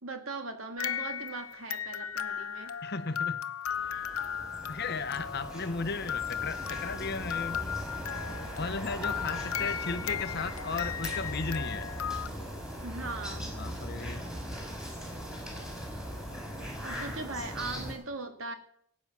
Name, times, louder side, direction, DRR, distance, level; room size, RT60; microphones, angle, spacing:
voice 1, 0.0-2.7 12.8-13.6 16.8-18.5, right 3 dB, 65° right, 7 dB, 1.9 m, -39 dB
sound 1, 0.8-12.3, left 8 dB, 80° left, 0.8 m, -36 dB
voice 2, 2.8-3.4 3.9-4.0 4.6-7.6 8.6-11.9 13.3-14.3, left 4 dB, 50° left, 12 dB, 0.9 m, -35 dB
sound 2, 3.6-17.9, equal, 5° right, 4.3 m, -39 dB
17.5 x 8.9 x 6.0 m, 0.65 s
head